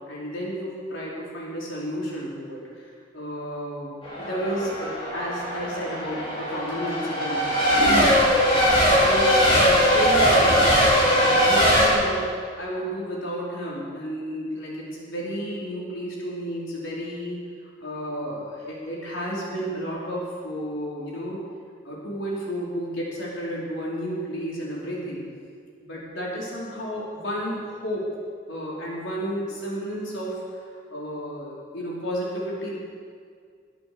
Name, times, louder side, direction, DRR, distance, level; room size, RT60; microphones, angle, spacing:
voice 1, 0.1-2.9 3.1-8.1 9.0-9.3 9.6-10.6 11.2-12.3 12.6-17.4 17.8-21.4 21.8-25.2 25.8-28.0 28.5-30.4 30.9-32.8, equal, 80° left, -5 dB, 4.9 m, -32 dB
Race car auto racing / Accelerating revving vroom / Mechanisms, 4.0-11.9, equal, 30° left, 4.2 m, -20 dB
23.0 x 8.7 x 7.1 m, 2.1 s
head